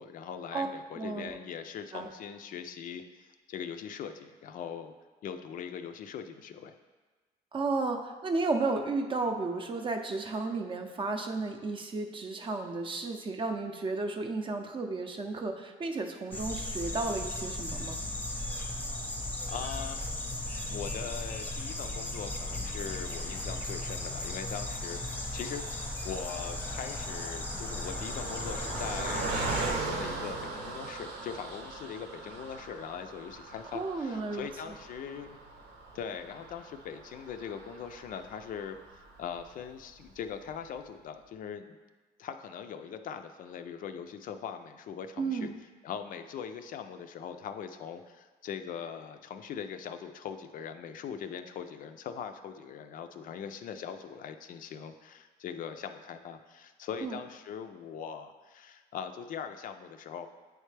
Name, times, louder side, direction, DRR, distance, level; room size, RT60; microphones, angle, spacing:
voice 1, 0.0-4.9 5.2-6.7 19.5-20.1 20.7-25.0 25.3-35.4 35.9-38.8 39.2-41.8 42.2-45.5 45.8-60.3, left 7 dB, 55° left, 8 dB, 0.4 m, -41 dB
voice 2, 1.0-1.4 1.9-2.1 7.5-18.0 33.7-34.5 45.2-45.5 57.0-57.2, right 3 dB, 30° right, 4 dB, 0.6 m, -33 dB
sound 1, 16.3-29.7, left 1 dB, 10° left, 0.7 m, -36 dB
Car passing by, 24.0-39.5 40.0-40.1 40.3-40.5, right 3 dB, 85° right, 0.9 m, -40 dB
8.9 x 3.3 x 3.2 m, 1.3 s
cardioid pair, 110°, 17 cm